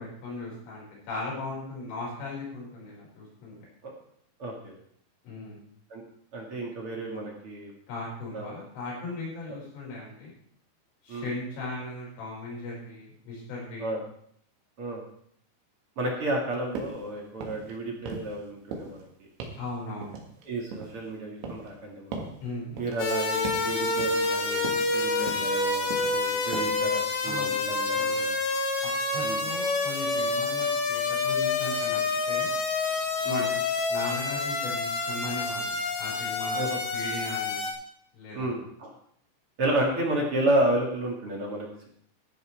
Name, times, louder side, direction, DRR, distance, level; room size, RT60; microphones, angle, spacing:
voice 1, 0.0-3.5 5.2-5.6 7.9-10.3 11.0-14.0 19.6-20.2 22.4-22.9 27.2-27.7 27.9-28.4 28.8-32.0 32.3-32.5 33.2-33.6 33.9-36.7 36.9-37.6 38.1-38.6, left 2 dB, 80° left, -5 dB, 8.1 m, -38 dB
voice 2, 4.4-4.8 5.9-6.0 6.3-7.7 8.3-8.6 9.5-9.6 11.1-11.3 13.8-14.0 14.8-15.0 16.0-19.1 20.4-22.2 22.8-28.4 29.2-29.4 33.2-33.4 36.5-36.8 38.3-38.9 39.6-41.9, right 1 dB, 50° right, -1 dB, 1.8 m, -31 dB
sound 1, 16.8-17.0 17.3-17.7 18.1-18.4 18.7-19.0 19.4-19.7 20.0-21.0 21.4-21.8 22.1-22.4 22.8-23.1 23.4-23.7 24.0-24.3 24.6-24.9 25.3-25.6 25.9-26.2 26.5-26.8, right 4 dB, 70° right, 4.0 m, -38 dB
sound 2, 23.0-37.7, left 3 dB, 60° left, 3.2 m, -28 dB
15.0 x 11.0 x 3.5 m, 0.65 s
omnidirectional pair, 5.5 m